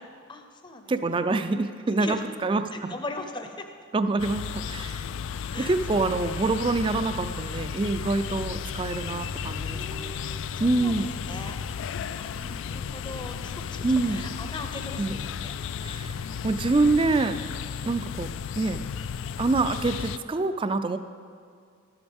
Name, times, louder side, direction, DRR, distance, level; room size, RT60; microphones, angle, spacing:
voice 1, 0.0-1.2 2.0-2.2 2.7-3.7 5.5-5.7 9.4-10.9 11.3-11.6 12.2-15.6, left 2 dB, 25° left, 6 dB, 0.7 m, -40 dB
voice 2, 0.9-2.9 3.9-5.1 5.6-10.2 10.6-11.1 13.8-14.2 15.0-15.1 15.8-16.2 16.4-17.4 17.8-18.8 19.4-21.0, right 3 dB, 25° right, 10 dB, 0.4 m, -26 dB
sound 1, 4.2-20.2, left 7 dB, 65° left, 0.3 m, -34 dB
13.0 x 11.5 x 3.5 m, 2.2 s
head